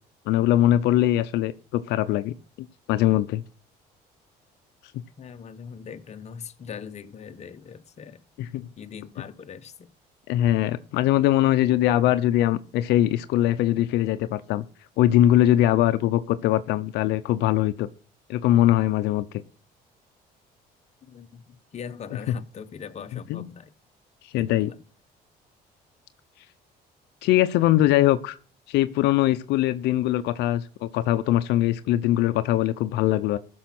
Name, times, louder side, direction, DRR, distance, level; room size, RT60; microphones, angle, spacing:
voice 1, 0.3-3.4 8.4-8.7 10.3-14.6 15.0-17.9 18.3-19.3 23.3-23.5 24.3-24.7 27.2-28.4 28.7-33.4, left 13 dB, 85° left, 0.6 m, -22 dB
voice 2, 5.2-8.2 8.8-9.9 21.0-23.7 24.3-24.8, left 7 dB, 40° left, 1.1 m, -41 dB
15.0 x 6.3 x 6.0 m
cardioid pair, 110°, 17 cm